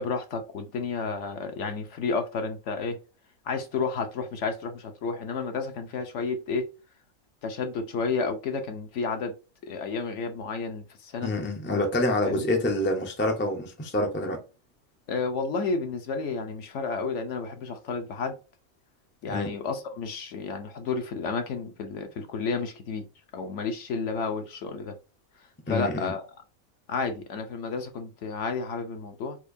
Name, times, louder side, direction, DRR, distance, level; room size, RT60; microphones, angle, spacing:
voice 1, 0.0-3.0 3.4-6.7 7.4-9.4 9.6-11.3 12.2-12.4 15.1-18.4 19.2-23.1 23.3-25.0 25.7-26.3 26.9-29.4, left 4 dB, 60° left, 1.0 m, -31 dB
voice 2, 11.2-14.4 19.3-19.5 25.7-26.1, left 1 dB, 15° left, 0.3 m, -27 dB
4.3 x 2.5 x 2.5 m
omnidirectional pair, 1.5 m